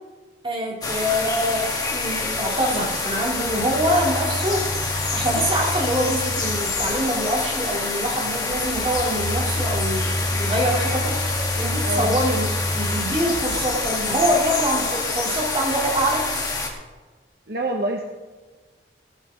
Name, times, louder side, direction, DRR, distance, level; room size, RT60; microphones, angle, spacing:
voice 1, 0.4-4.7 5.1-11.2 11.5-16.3, equal, 30° right, -3 dB, 3.5 m, -25 dB
sound 1, 0.8-16.7, left 3 dB, 20° left, 2.1 m, -27 dB
Telephone, 3.2-7.2 8.4-14.1, equal, 90° right, 4.2 m, -30 dB
voice 2, 11.8-12.2 17.5-18.0, right 1 dB, 60° right, 1 dB, 1.3 m, -26 dB
15.5 x 13.5 x 4.0 m, 1.3 s
head